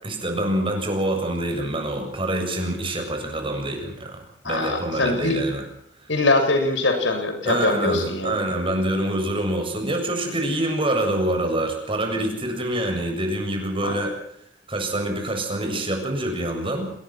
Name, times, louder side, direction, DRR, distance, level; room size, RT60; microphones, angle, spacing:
voice 1, 0.0-5.6 6.0-6.1 7.5-14.1 14.7-16.9, right 1 dB, 30° right, 4 dB, 7.5 m, -26 dB
voice 2, 4.4-5.4 6.1-8.4 13.8-13.9, left 2 dB, 85° left, 6 dB, 6.8 m, -22 dB
28.0 x 20.5 x 6.0 m, 0.71 s
head